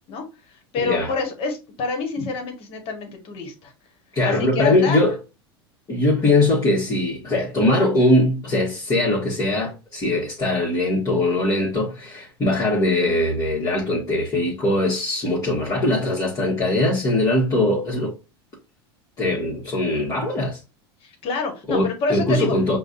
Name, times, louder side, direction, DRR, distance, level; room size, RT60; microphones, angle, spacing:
voice 1, 0.1-3.7 4.2-5.0 21.0-22.5, left 4 dB, 45° left, 1.4 m, -27 dB
voice 2, 0.8-1.1 4.1-5.1 5.9-18.1 19.2-20.6 21.7-22.8, left 1 dB, 25° left, 1.5 m, -21 dB
5.1 x 2.4 x 2.6 m
hypercardioid pair, 90°, 13 cm